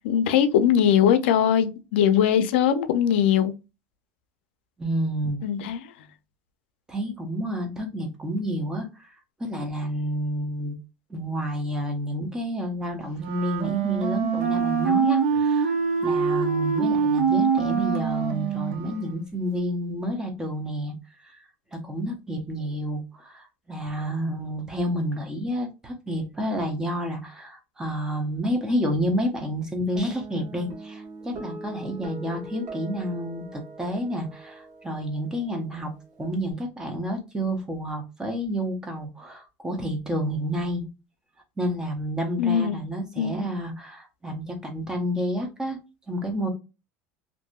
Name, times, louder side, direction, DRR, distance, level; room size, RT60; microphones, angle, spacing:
voice 1, 0.0-3.5 5.4-5.8 42.4-42.8 43.2-43.5, left 9 dB, 90° left, 0.4 m, -21 dB
voice 2, 4.8-5.4 6.9-9.1 9.4-10.8 11.1-15.7 16.0-20.9 21.2-21.4 21.7-35.9 36.2-40.8 41.6-45.8 46.1-46.5, equal, 10° right, 0.7 m, -30 dB
Wind instrument woodwind instrument, 13.1-19.4, right 6 dB, 85° right, 0.7 m, -24 dB
Guitar, 30.0-36.5, right 2 dB, 60° right, 1.1 m, -42 dB
2.7 x 2.5 x 2.2 m
supercardioid pair, 140°, 6 cm